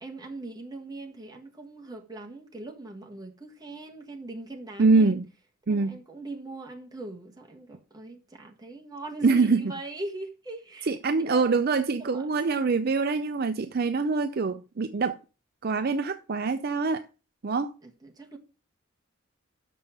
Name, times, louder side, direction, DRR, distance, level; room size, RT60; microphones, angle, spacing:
voice 1, 0.0-5.2 5.7-10.9 11.2-11.5 12.0-12.3 17.8-18.4, right 2 dB, 20° right, 1.5 m, -41 dB
voice 2, 4.8-5.3 5.7-6.0 9.2-9.6 10.9-15.2 15.6-17.0 17.4-17.7, right 4 dB, 45° right, 0.5 m, -24 dB
6.6 x 5.5 x 7.2 m
head